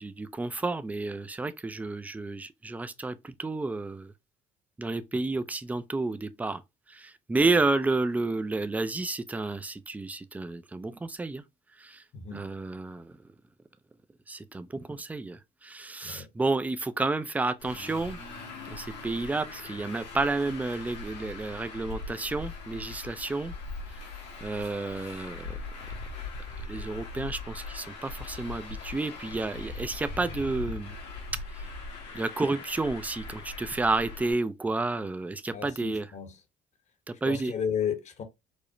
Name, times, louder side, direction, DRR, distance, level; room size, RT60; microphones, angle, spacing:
voice 1, 0.0-4.1 4.8-6.6 6.9-11.4 11.8-12.0 12.3-13.1 14.3-18.2 18.7-23.5 24.4-25.6 26.7-31.0 31.6-31.7 32.1-36.1 37.1-37.5, right 3 dB, 10° right, 0.3 m, -31 dB
voice 2, 12.1-12.5 16.0-16.3 35.5-36.4 37.2-38.2, left 7 dB, 45° left, 0.9 m, -33 dB
Traffic noise roadway noise, 17.6-34.3, left 3 dB, 85° left, 1.6 m, -40 dB
4.8 x 2.0 x 2.5 m
cardioid pair, 110°, 17 cm